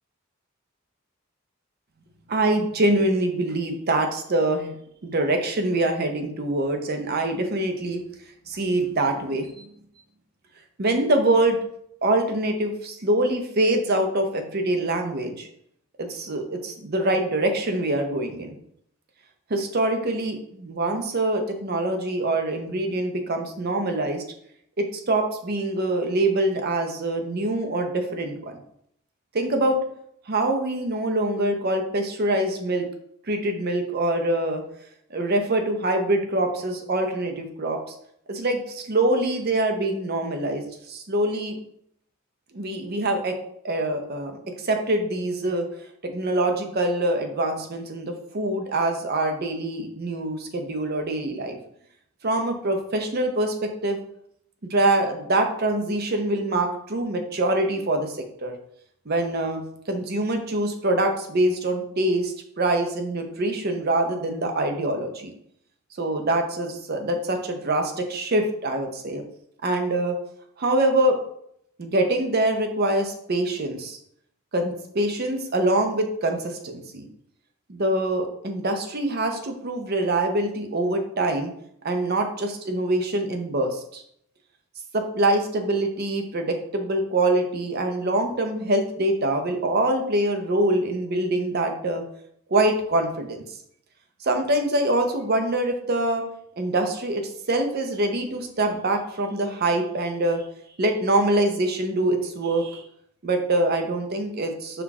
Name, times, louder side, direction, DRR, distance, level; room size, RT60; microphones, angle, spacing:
voice 1, 2.3-4.7 5.0-8.0 8.5-9.7 10.8-11.6 12.0-15.5 16.0-18.5 19.5-24.2 24.8-28.5 29.3-29.8 30.3-32.9 33.3-34.6 35.1-37.8 38.3-41.6 42.5-43.4 43.6-44.3 44.6-45.7 46.0-51.6 52.2-54.0 54.6-58.1 58.4-58.5 59.1-65.3 66.0-69.2 69.6-70.2 70.6-71.2 71.8-74.0 74.5-77.1 77.7-81.5 81.8-84.0 84.9-92.0 92.5-93.4 94.2-96.2 96.6-97.2 97.5-100.4 100.8-102.8 103.2-104.8, right 1 dB, 45° right, 5 dB, 0.6 m, -24 dB
5.8 x 2.3 x 3.5 m, 0.71 s
head